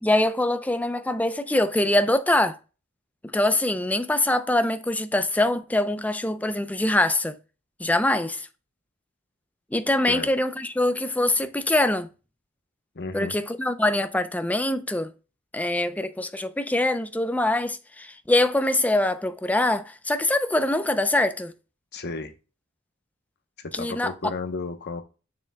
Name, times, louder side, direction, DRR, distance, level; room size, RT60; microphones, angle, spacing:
voice 1, 0.0-2.6 3.3-7.4 7.8-8.5 9.7-12.1 13.1-15.1 15.5-21.5 23.7-24.1, left 1 dB, 5° left, 0.5 m, -23 dB
voice 2, 12.9-13.3 21.9-22.3 23.6-25.0, left 3 dB, 50° left, 1.0 m, -33 dB
7.4 x 6.5 x 2.2 m
head